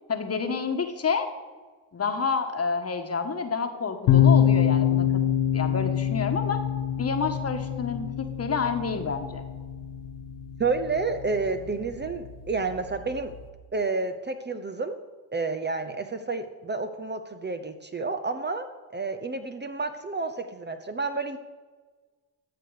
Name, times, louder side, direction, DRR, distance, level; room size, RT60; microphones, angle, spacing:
voice 1, 0.1-1.3 1.9-5.1 5.5-6.6 7.0-9.4, left 5 dB, 35° left, 6 dB, 1.4 m, -29 dB
sound 1, 4.1-13.5, left 9 dB, 75° left, 1.0 m, -26 dB
voice 2, 10.6-13.3 13.7-15.0 15.3-18.7 18.9-21.4, right 4 dB, 25° right, 7 dB, 0.8 m, -30 dB
13.5 x 6.8 x 4.9 m, 1.4 s
supercardioid pair, 75°, 42 cm